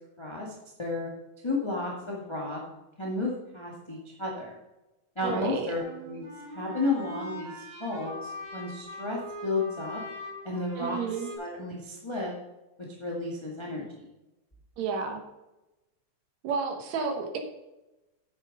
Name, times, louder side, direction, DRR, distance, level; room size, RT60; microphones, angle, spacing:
voice 1, 0.2-0.5 0.8-1.1 1.4-2.6 3.0-4.5 5.1-5.8 6.0-6.2 6.5-10.0 10.4-11.0 11.4-12.3 13.0-14.1, left 2 dB, 15° left, -2 dB, 1.1 m, -32 dB
voice 2, 5.2-5.7 10.8-11.3 14.8-15.2 16.4-17.4, right 5 dB, 70° right, 5 dB, 2.4 m, -31 dB
sound 1, 5.8-11.4, equal, 40° right, 5.4 m, -41 dB
9.3 x 8.0 x 5.3 m, 1.0 s
omnidirectional pair, 3.4 m